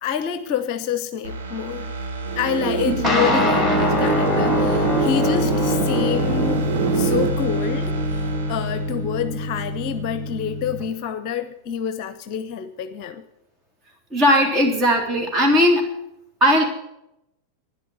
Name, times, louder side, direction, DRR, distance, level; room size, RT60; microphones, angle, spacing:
voice 1, 0.0-1.9 2.4-13.2, left 8 dB, 40° left, 11 dB, 0.9 m, -27 dB
sound 1, 1.2-9.9 10.3-10.4, right 3 dB, 70° right, 2.5 m, -32 dB
sound 2, 2.3-7.3, right 6 dB, 50° right, 1.7 m, -26 dB
sound 3, 3.0-10.8, left 1 dB, ahead, 2.4 m, -23 dB
voice 2, 14.1-15.8 16.4-16.6, equal, 20° right, 1 dB, 3.6 m, -17 dB
12.5 x 10.0 x 8.2 m, 0.85 s
figure-of-eight pair, 90°, 0 cm